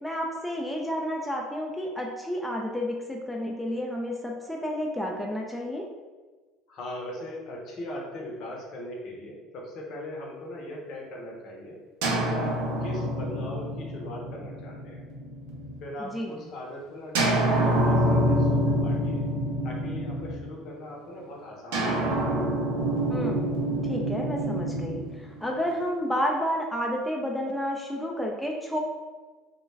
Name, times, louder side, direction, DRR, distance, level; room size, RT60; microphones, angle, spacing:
voice 1, 0.0-5.9 16.0-16.4 23.1-23.5 23.8-25.0 25.4-28.8, equal, 5° left, -1 dB, 0.3 m, -30 dB
voice 2, 6.7-11.8 12.2-15.0 15.8-19.3 19.6-22.2, left 1 dB, 60° left, -1 dB, 0.7 m, -39 dB
sound 1, 12.0-15.8 17.1-20.7 21.7-25.9, right 1 dB, 85° right, 0.5 m, -27 dB
2.2 x 2.2 x 3.2 m, 1.3 s
supercardioid pair, 100°, 0 cm